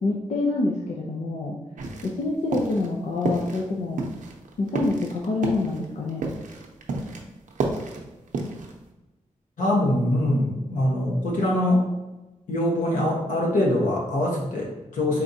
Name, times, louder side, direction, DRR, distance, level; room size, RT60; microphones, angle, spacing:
voice 1, 0.0-1.6 2.0-4.0 4.6-6.2, left 3 dB, 60° left, -2 dB, 0.5 m, -26 dB
sound 1, 1.8-2.2 2.5-2.9 3.2-3.7 4.0-7.2 7.5-8.8, right 3 dB, 90° right, 0.6 m, -30 dB
voice 2, 9.6-11.8 12.5-15.2, left 1 dB, 85° left, -2 dB, 1.1 m, -23 dB
4.4 x 3.6 x 2.7 m, 1.0 s
wide cardioid pair, 175°, 13 cm